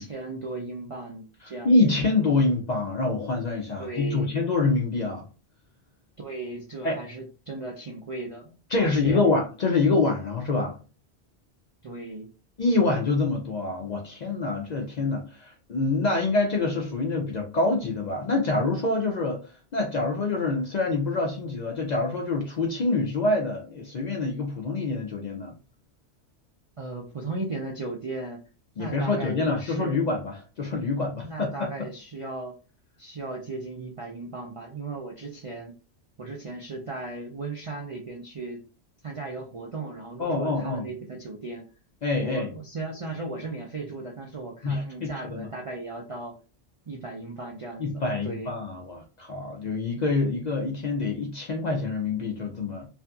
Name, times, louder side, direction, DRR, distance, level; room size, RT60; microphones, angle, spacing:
voice 1, 0.0-2.0 3.8-4.3 6.2-8.5 9.0-9.2 11.8-12.3 26.8-28.4 28.8-30.0 31.2-32.5 33.0-35.7 36.2-38.6 39.0-41.7 42.2-46.3 46.9-48.5, right 2 dB, 50° right, 0.4 m, -36 dB
voice 2, 1.4-5.3 6.8-7.0 8.7-10.8 12.6-25.5 28.8-31.7 40.2-40.9 42.0-42.5 44.6-45.5 47.8-52.9, left 3 dB, 55° left, 0.5 m, -26 dB
2.6 x 2.4 x 2.3 m
omnidirectional pair, 1.1 m